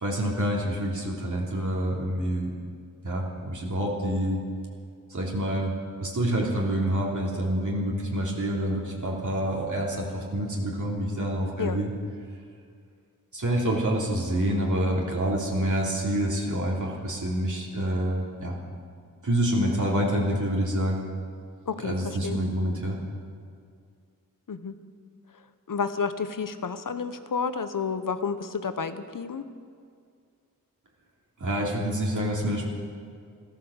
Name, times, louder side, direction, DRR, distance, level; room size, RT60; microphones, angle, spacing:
voice 1, 0.0-2.5 3.0-4.4 5.1-5.7 6.0-11.9 13.3-18.6 19.2-21.0 21.8-23.0 31.4-32.7, right 1 dB, 60° right, -3 dB, 3.1 m, -27 dB
voice 2, 21.7-22.4 24.5-24.8 25.7-29.5, left 5 dB, 70° left, 10 dB, 1.0 m, -30 dB
14.5 x 13.5 x 7.2 m, 2.2 s
wide cardioid pair, 70°, 34 cm